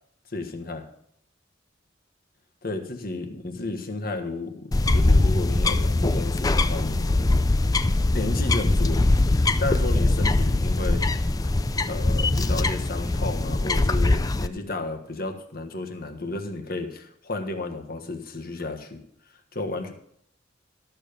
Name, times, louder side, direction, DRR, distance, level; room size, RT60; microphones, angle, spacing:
voice 1, 0.3-0.8 2.6-7.0 8.1-11.0 11.4-11.5 11.9-19.0 19.5-19.9, left 2 dB, 50° left, 5 dB, 1.4 m, -32 dB
sound 1, 4.7-14.5, left 2 dB, 20° left, 0.4 m, -22 dB
13.0 x 6.9 x 5.2 m, 0.70 s
head